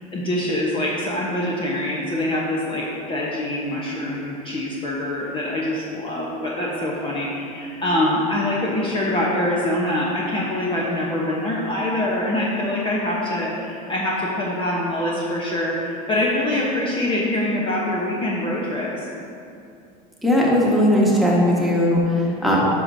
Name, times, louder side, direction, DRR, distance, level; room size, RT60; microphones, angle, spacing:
voice 1, 0.1-19.1, left 1 dB, 25° left, -4 dB, 0.9 m, -24 dB
voice 2, 20.2-22.6, left 1 dB, ahead, -5 dB, 1.5 m, -18 dB
9.5 x 6.2 x 2.7 m, 2.6 s
supercardioid pair, 115°, 20 cm